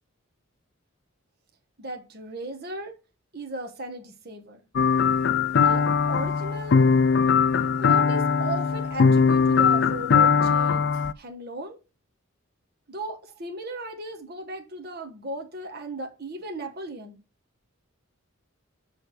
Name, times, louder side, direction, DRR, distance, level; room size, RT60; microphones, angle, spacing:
voice 1, 1.8-2.9 3.3-4.6 5.6-6.8 7.8-10.8 11.2-11.8 12.9-17.2, right 2 dB, 45° right, 1.3 m, -36 dB
sound 1, 4.8-11.1, left 5 dB, 55° left, 0.4 m, -20 dB
6.4 x 5.0 x 6.3 m
head